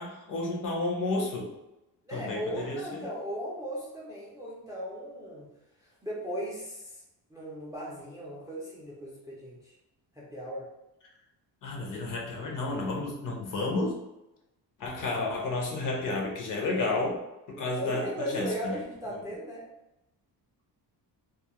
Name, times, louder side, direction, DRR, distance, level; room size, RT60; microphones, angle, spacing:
voice 1, 0.0-1.5 2.1-3.0 11.6-14.0 14.8-17.2 17.5-18.8, left 2 dB, 50° left, 0 dB, 0.6 m, -31 dB
voice 2, 2.0-5.5 6.0-7.0 7.3-9.8 10.2-10.7 17.8-19.6, equal, 10° right, -5 dB, 0.3 m, -37 dB
2.3 x 2.0 x 2.8 m, 0.93 s
cardioid pair, 155°, 42 cm